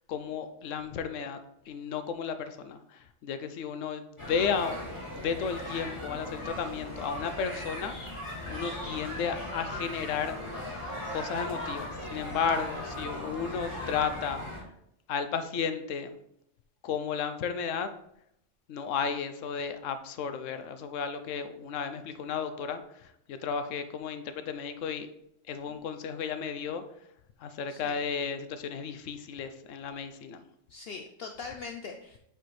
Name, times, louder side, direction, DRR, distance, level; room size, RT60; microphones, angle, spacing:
voice 1, 0.1-1.4 1.7-4.8 5.1-10.4 11.1-14.6 15.1-16.2 16.8-17.9 18.7-25.1 25.5-26.8 27.4-30.4, left 6 dB, 85° left, 9 dB, 1.0 m, -33 dB
sound 1, 4.2-14.6, left 1 dB, 25° left, 2.4 m, -38 dB
voice 2, 27.7-28.0 30.7-32.2, left 5 dB, 65° left, 4 dB, 0.7 m, -42 dB
7.9 x 4.3 x 3.1 m, 0.76 s
omnidirectional pair, 1.3 m